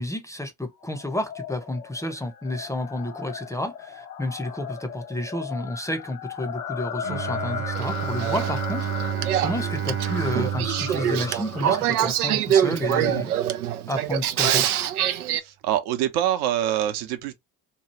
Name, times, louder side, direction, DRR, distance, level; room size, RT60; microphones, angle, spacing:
voice 1, 0.0-8.9 9.4-13.3 13.9-14.6, left 1 dB, 5° left, 0.8 m, -31 dB
sound 1, 0.8-13.2, left 8 dB, 90° left, 0.6 m, -37 dB
Bowed string instrument, 7.0-12.3, right 11 dB, 30° right, 0.5 m, -31 dB
Male speech man speaking / Female speech woman speaking / Conversation, 7.7-15.4, right 10 dB, 80° right, 0.6 m, -25 dB
voice 2, 15.4-17.3, right 11 dB, 55° right, 0.9 m, -25 dB
3.1 x 2.3 x 3.0 m
hypercardioid pair, 60°, 44 cm